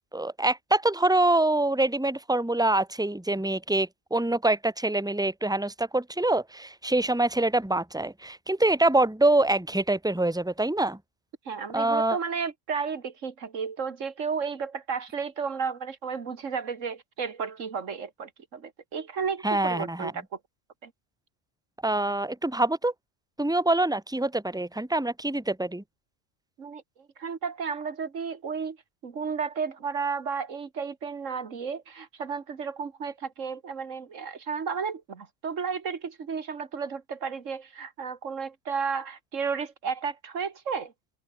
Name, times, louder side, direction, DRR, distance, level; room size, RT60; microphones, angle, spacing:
voice 1, 0.1-11.0 11.7-12.2 19.4-20.1 21.8-22.9 23.4-25.8, right 2 dB, 5° right, 1.8 m, -25 dB
voice 2, 11.5-20.2 20.8-20.9 26.6-26.8 27.2-28.8 29.0-40.9, right 6 dB, 90° right, 2.1 m, -33 dB
open air
omnidirectional pair, 1.3 m